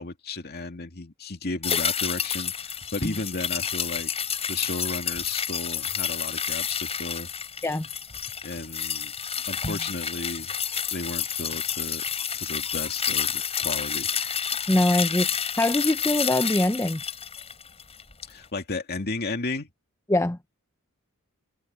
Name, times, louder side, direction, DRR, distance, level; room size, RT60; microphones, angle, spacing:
voice 1, 0.0-4.1 4.5-7.3 8.4-9.1 9.5-10.5 10.9-12.0 12.3-14.1 18.3-19.7, left 3 dB, 45° left, 2.4 m, -34 dB
sound 1, 1.6-18.1 18.4-18.5, left 7 dB, 30° left, 6.2 m, -29 dB
voice 2, 14.7-17.0 20.1-20.4, left 1 dB, 15° left, 0.7 m, -23 dB
head